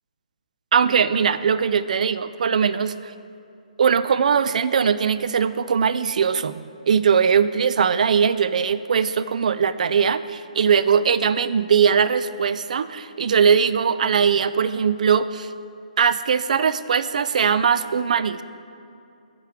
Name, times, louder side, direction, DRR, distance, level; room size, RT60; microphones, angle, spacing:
voice 1, 0.7-3.1 3.8-15.5 16.0-18.4, right 6 dB, 65° right, 13 dB, 0.3 m, -20 dB
13.0 x 4.7 x 3.4 m, 2.6 s
hypercardioid pair, 155°, 4 cm